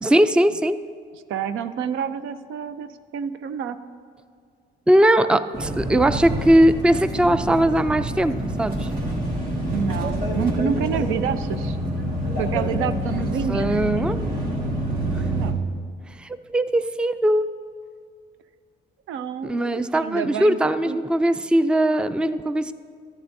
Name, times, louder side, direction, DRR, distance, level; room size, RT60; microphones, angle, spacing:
voice 1, 0.0-0.8 4.9-8.9 13.5-14.2 16.2-17.5 19.4-22.7, right 1 dB, 5° right, 12 dB, 0.3 m, -20 dB
voice 2, 1.3-3.8 9.7-11.8 12.4-14.1 15.3-15.6 19.1-20.6 20.9-21.0, right 7 dB, 90° right, 11 dB, 0.5 m, -28 dB
sound 1, 5.5-15.5, equal, 45° right, 2.5 m, -27 dB
14.0 x 10.5 x 2.7 m, 2.2 s
cardioid pair, 90°, 20 cm